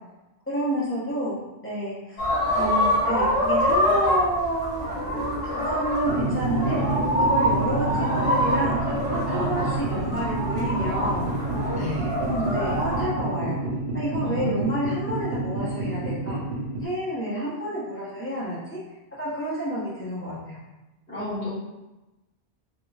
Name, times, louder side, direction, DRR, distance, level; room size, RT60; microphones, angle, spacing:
voice 1, 0.5-1.4 1.6-2.2 2.5-11.3 12.2-13.6 13.9-16.4 16.8-18.8 19.2-20.6, right 1 dB, 10° left, -8 dB, 1.0 m, -29 dB
sound 1, 2.2-13.0, equal, 30° left, 1.5 m, -25 dB
sound 2, 6.1-16.8, right 2 dB, 70° right, 0.8 m, -29 dB
voice 2, 11.8-12.2 14.2-14.6 21.1-21.5, left 1 dB, 70° left, -17 dB, 1.7 m, -31 dB
3.7 x 2.9 x 2.4 m, 1.0 s
omnidirectional pair, 1.1 m